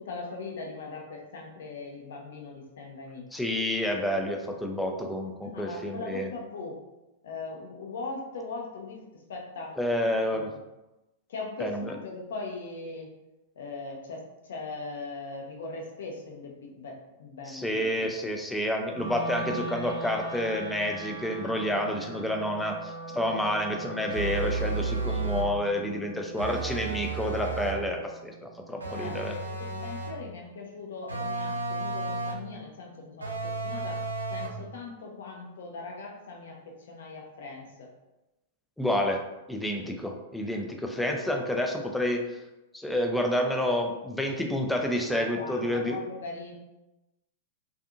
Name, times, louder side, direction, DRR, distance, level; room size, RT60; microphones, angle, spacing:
voice 1, 0.0-3.3 5.4-6.8 7.2-9.8 10.3-10.6 11.3-13.1 13.6-18.1 23.1-23.2 28.7-34.0 34.3-37.9 39.8-40.0 45.1-46.5, left 3 dB, 65° left, 1 dB, 0.6 m, -40 dB
voice 2, 3.3-6.3 9.8-10.5 11.6-11.8 17.5-29.4 38.8-39.2 39.5-42.2 42.7-46.0, left 1 dB, 5° left, 2 dB, 0.4 m, -29 dB
Wind instrument woodwind instrument, 18.9-29.1, right 3 dB, 45° right, 0.8 m, -41 dB
sound 1, 24.1-25.6 26.4-27.9 28.8-30.3 31.1-32.5 33.2-34.7, right 3 dB, 85° right, 0.4 m, -33 dB
2.5 x 2.4 x 2.4 m, 0.99 s
figure-of-eight pair, 100°, 0 cm